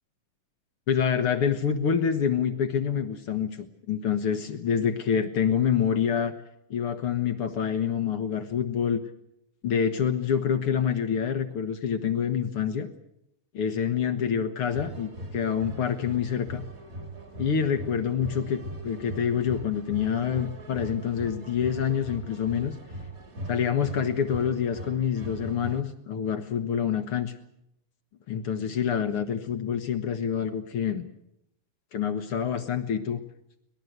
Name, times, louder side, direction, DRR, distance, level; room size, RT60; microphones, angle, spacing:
voice 1, 0.9-6.3 6.7-9.0 9.6-12.9 13.5-16.6 17.4-22.7 23.5-27.3 28.3-31.1 31.9-33.2, left 8 dB, 65° left, 9 dB, 1.4 m, -27 dB
peruian marchingband rehearsing, 14.7-25.8, right 1 dB, 25° right, 1.5 m, -39 dB
24.0 x 20.0 x 8.0 m, 0.79 s
omnidirectional pair, 4.2 m